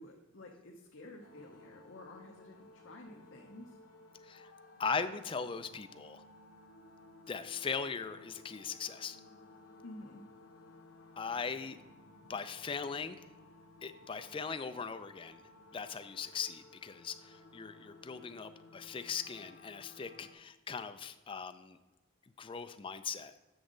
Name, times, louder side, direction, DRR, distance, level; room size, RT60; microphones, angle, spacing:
voice 1, 0.0-3.8 9.8-10.2, left 1 dB, 65° left, 0 dB, 0.7 m, -51 dB
sound 1, 1.2-20.3, left 2 dB, 80° left, 1.1 m, -58 dB
voice 2, 4.8-6.2 7.3-9.2 11.2-11.8 12.3-13.2 13.8-15.4 15.7-21.8 22.4-23.3, left 5 dB, 25° left, 10 dB, 0.3 m, -39 dB
7.9 x 6.2 x 3.8 m, 1.1 s
head